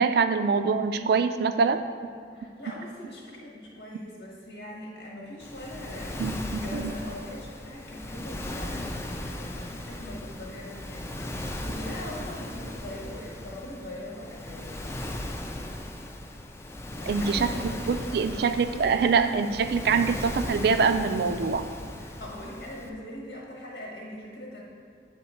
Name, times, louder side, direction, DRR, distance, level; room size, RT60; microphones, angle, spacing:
voice 1, 0.0-1.8 6.2-6.3 6.7-6.9 17.1-21.7, right 5 dB, 60° right, 10 dB, 0.3 m, -24 dB
voice 2, 2.3-14.7 17.0-17.8 18.1-18.4 22.0-24.6, left 1 dB, 80° left, -4 dB, 1.3 m, -42 dB
Waves surf, 5.4-22.9, left 1 dB, 15° left, 0.3 m, -37 dB
8.4 x 3.7 x 4.2 m, 2.3 s
head